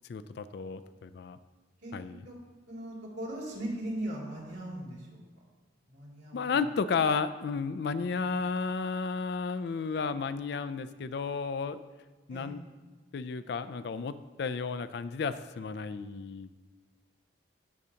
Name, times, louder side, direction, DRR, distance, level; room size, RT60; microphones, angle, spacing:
voice 1, 0.1-1.4 1.9-2.3 6.3-11.8 12.3-12.6 13.1-16.6, left 5 dB, 60° left, 13 dB, 0.3 m, -33 dB
voice 2, 2.7-5.2 5.9-6.6 12.3-12.5, right 1 dB, 70° right, -4 dB, 2.7 m, -38 dB
13.5 x 6.3 x 2.8 m, 1.3 s
head